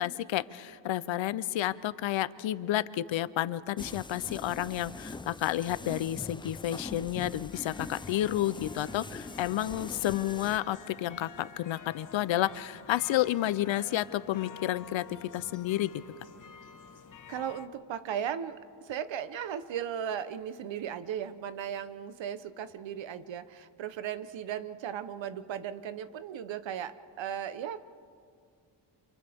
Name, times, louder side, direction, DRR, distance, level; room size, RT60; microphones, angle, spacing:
voice 1, 0.0-15.9, left 13 dB, 75° left, 16 dB, 0.7 m, -31 dB
sound 1, 3.8-10.6, left 3 dB, 10° left, 0.4 m, -43 dB
sound 2, 7.5-17.7, left 6 dB, 40° left, 1.3 m, -50 dB
voice 2, 17.3-27.8, right 9 dB, 70° right, 13 dB, 1.0 m, -36 dB
30.0 x 27.5 x 3.6 m, 2.3 s
cardioid pair, 115°, 46 cm